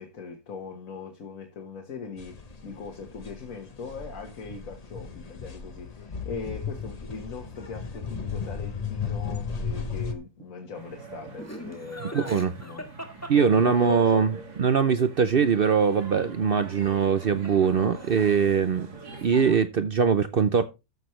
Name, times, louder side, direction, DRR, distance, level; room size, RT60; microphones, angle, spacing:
voice 1, 0.0-12.9 13.3-14.2, left 5 dB, 60° left, 1.8 m, -40 dB
sound 1, 2.2-10.1, left 6 dB, 30° left, 0.9 m, -35 dB
sound 2, 10.7-19.6, right 3 dB, 85° right, 2.8 m, -44 dB
Laughter, 11.4-14.1 16.9-17.7 17.9-18.5, equal, 10° left, 1.7 m, -41 dB
voice 2, 12.1-12.5 13.3-18.9 19.2-20.6, right 6 dB, 60° right, 0.6 m, -22 dB
13.5 x 6.2 x 3.1 m
omnidirectional pair, 1.6 m